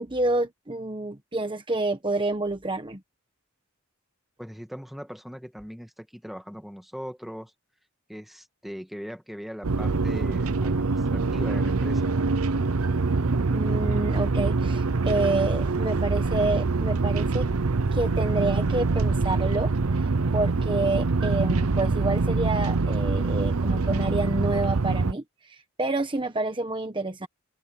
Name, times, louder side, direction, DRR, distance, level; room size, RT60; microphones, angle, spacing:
voice 1, 0.0-3.0 12.9-13.0 13.5-17.5 17.9-20.1 20.3-27.3, right 2 dB, 25° right, 1.2 m, -28 dB
voice 2, 4.4-7.5 8.1-12.1, equal, ahead, 1.7 m, -40 dB
sound 1, 9.6-25.1, right 3 dB, 85° right, 0.8 m, -24 dB
head